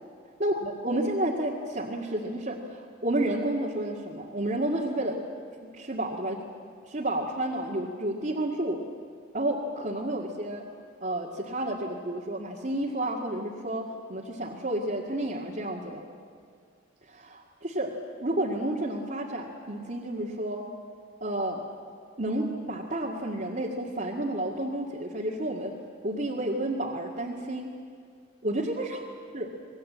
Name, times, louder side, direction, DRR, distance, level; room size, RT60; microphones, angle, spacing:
voice 1, 0.4-5.2 5.6-6.4 6.9-8.8 9.3-10.6 11.0-16.1 17.1-17.9 18.2-20.7 21.2-21.6 22.2-25.7 26.0-27.7 28.4-29.0 29.3-29.5, right 1 dB, 40° right, -3 dB, 2.0 m, -31 dB
26.5 x 20.5 x 8.6 m, 2.2 s
head